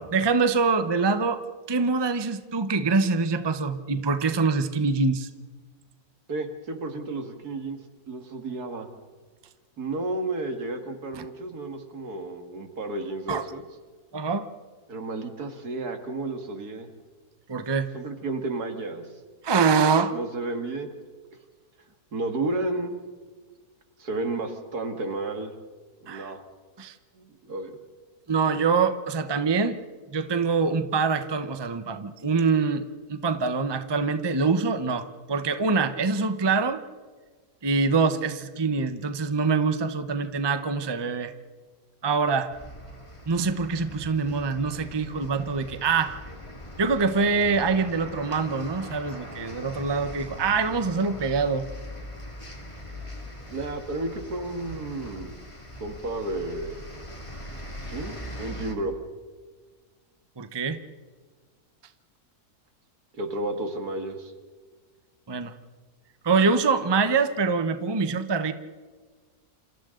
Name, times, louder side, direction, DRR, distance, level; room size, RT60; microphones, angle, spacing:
voice 1, 0.0-5.3 11.2-11.3 13.3-13.5 14.1-14.5 17.5-17.9 19.4-20.1 26.1-26.3 26.8-26.9 28.3-29.8 30.1-32.8 33.1-36.8 37.6-41.3 42.0-42.5 43.3-46.2 46.8-51.6 60.4-60.8 65.3-65.5 66.2-68.5, right 4 dB, 20° right, 9 dB, 0.8 m, -24 dB
voice 2, 6.3-7.8 8.1-8.9 9.8-13.6 14.9-16.9 17.9-19.1 20.1-20.9 22.1-22.9 24.0-25.5 26.0-26.4 27.1-27.8 53.5-55.3 55.8-56.8 57.9-58.9 63.1-64.3, right 2 dB, 75° right, 5 dB, 2.6 m, -32 dB
sound 1, 42.5-58.8, left 1 dB, 20° left, 2.6 m, -41 dB
28.5 x 28.0 x 3.9 m, 1.4 s
omnidirectional pair, 1.7 m